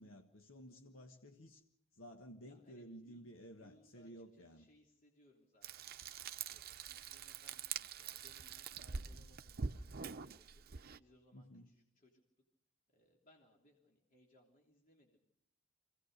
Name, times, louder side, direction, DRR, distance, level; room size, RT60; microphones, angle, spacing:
voice 1, 0.0-1.6 1.9-4.7 11.3-11.7, equal, 70° left, 1.5 m, -54 dB
voice 2, 2.5-3.3 3.6-5.7 6.3-10.6 11.0-12.4 12.9-15.2, left 1 dB, 40° left, 3.3 m, -69 dB
Frying (food), 5.6-11.0, right 6 dB, 50° right, 0.7 m, -45 dB
26.0 x 18.0 x 6.7 m
head